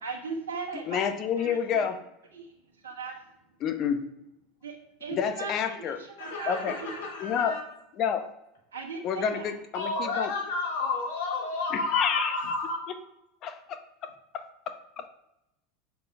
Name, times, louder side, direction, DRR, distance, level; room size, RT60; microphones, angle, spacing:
voice 1, 0.0-1.1 1.4-1.9 2.3-2.5 2.8-3.2 4.6-7.0 8.7-9.5, right 4 dB, 85° right, 2 dB, 1.1 m, -38 dB
voice 2, 0.9-2.0 3.6-4.0 5.1-6.0 6.5-6.8 7.2-7.6 8.0-8.3 9.0-10.3 11.7-12.4 13.4-13.8 14.3-14.4, left 7 dB, 45° left, 8 dB, 0.8 m, -28 dB
voice 3, 6.2-7.6 9.7-12.8, left 3 dB, 75° left, -1 dB, 2.6 m, -31 dB
6.0 x 5.8 x 5.0 m, 0.84 s
hypercardioid pair, 85°, 0 cm